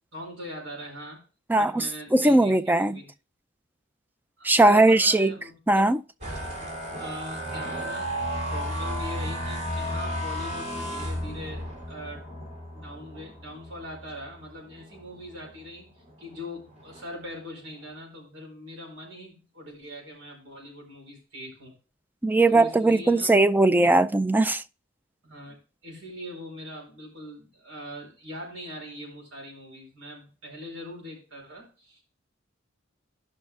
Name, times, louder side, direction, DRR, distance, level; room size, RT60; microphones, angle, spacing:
voice 1, 0.1-1.2 1.5-3.1 4.4-6.0 7.0-8.1 8.5-12.3 12.7-21.7 22.5-23.4 25.2-25.6 25.8-32.0, equal, 80° right, 4.6 m, -41 dB
voice 2, 1.5-3.0 4.4-5.3 5.7-6.0 22.2-24.6, right 2 dB, 10° right, 0.4 m, -19 dB
sound 1, 6.2-15.6 16.1-16.4 16.7-17.2, equal, 40° right, 3.6 m, -34 dB
16.0 x 5.7 x 2.4 m
head